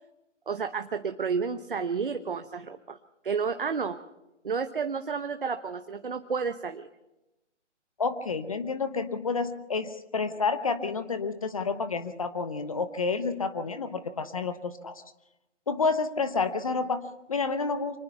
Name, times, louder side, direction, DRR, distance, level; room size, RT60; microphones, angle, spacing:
voice 1, 0.5-3.0 3.2-4.0 4.4-6.9, right 5 dB, 45° right, 9 dB, 1.0 m, -31 dB
voice 2, 8.0-15.0 15.7-18.0, left 4 dB, 30° left, 11 dB, 0.9 m, -29 dB
25.0 x 19.5 x 5.7 m, 0.96 s
figure-of-eight pair, 150°, 36 cm